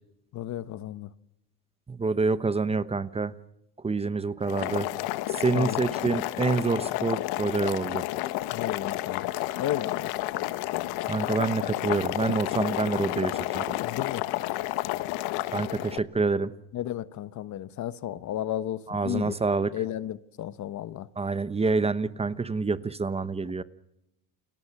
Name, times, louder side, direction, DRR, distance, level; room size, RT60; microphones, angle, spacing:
voice 1, 0.3-1.1 5.5-5.8 8.5-9.3 9.6-10.1 13.8-14.3 16.7-19.4 19.7-21.1, left 12 dB, 45° left, 1.3 m, -33 dB
voice 2, 1.9-3.3 3.8-4.9 5.3-8.0 11.1-13.7 15.5-16.5 18.9-19.7 21.2-23.6, right 4 dB, 15° right, 1.1 m, -27 dB
Boiling, 4.4-16.0, left 17 dB, 70° left, 1.5 m, -31 dB
29.5 x 23.0 x 6.0 m
cardioid pair, 120°, 39 cm